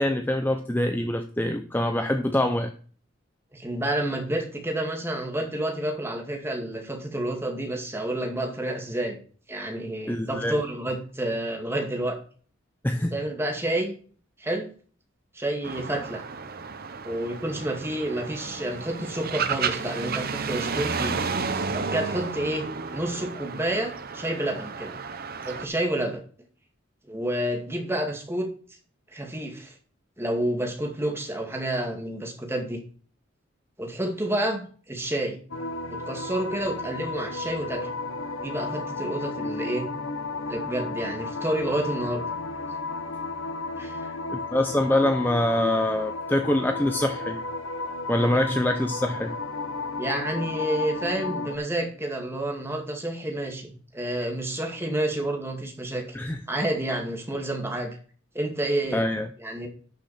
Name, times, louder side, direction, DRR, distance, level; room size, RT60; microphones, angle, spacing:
voice 1, 0.0-2.7 10.1-10.6 12.8-13.2 44.3-47.4 48.1-49.3 56.1-56.4 58.9-59.3, left 1 dB, 10° left, 6 dB, 0.7 m, -24 dB
voice 2, 3.5-9.2 9.5-12.2 13.1-14.0 14.4-14.7 15.3-16.2 17.0-21.2 21.7-22.7 22.9-24.9 25.4-26.2 27.1-28.5 29.1-29.7 30.2-32.8 33.8-35.4 36.1-37.9 38.4-39.9 40.4-42.2 43.8-44.1 48.2-48.4 50.0-56.2 56.5-58.0 58.3-59.0 59.4-59.7, right 1 dB, 10° right, 2 dB, 2.2 m, -29 dB
sound 1, 15.6-25.7, right 5 dB, 50° right, 0.9 m, -32 dB
sound 2, 35.5-51.6, left 3 dB, 75° left, 0.9 m, -33 dB
11.5 x 6.5 x 4.3 m, 0.43 s
head